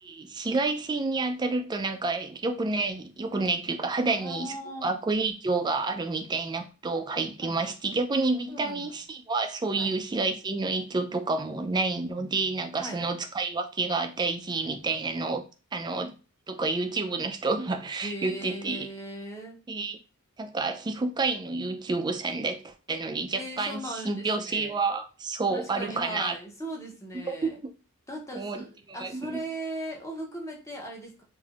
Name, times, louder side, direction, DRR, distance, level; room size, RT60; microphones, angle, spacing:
voice 1, 0.0-4.6 4.8-15.5 15.7-16.1 16.5-18.9 19.7-20.0 20.4-26.3 27.3-27.7 28.3-29.4, right 3 dB, 20° right, 0.3 m, -29 dB
voice 2, 4.1-4.9 7.4-7.5 8.5-9.0 9.7-9.9 12.8-13.0 18.0-19.6 23.3-24.8 25.5-27.5 28.1-31.2, right 1 dB, 15° left, 0.7 m, -38 dB
3.3 x 2.6 x 2.4 m
head